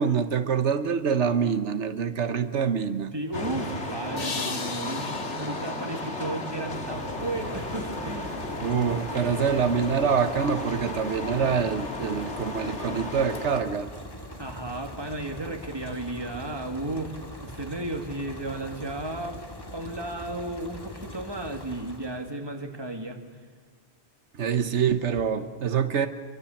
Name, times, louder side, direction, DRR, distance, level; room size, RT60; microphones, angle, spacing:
voice 1, 0.0-3.1 8.6-13.9 24.3-26.1, right 7 dB, 90° right, 10 dB, 1.3 m, -25 dB
voice 2, 3.1-8.4 14.4-19.4 19.7-23.2, right 2 dB, 20° right, 4 dB, 2.3 m, -34 dB
sound 1, 3.3-13.6, left 2 dB, 85° left, 2.6 m, -34 dB
sound 2, 4.2-7.3, left 4 dB, 55° left, 1.6 m, -38 dB
sound 3, 6.7-22.4, left 1 dB, 20° left, 2.0 m, -42 dB
26.5 x 23.5 x 7.2 m, 1.6 s
omnidirectional pair, 1.1 m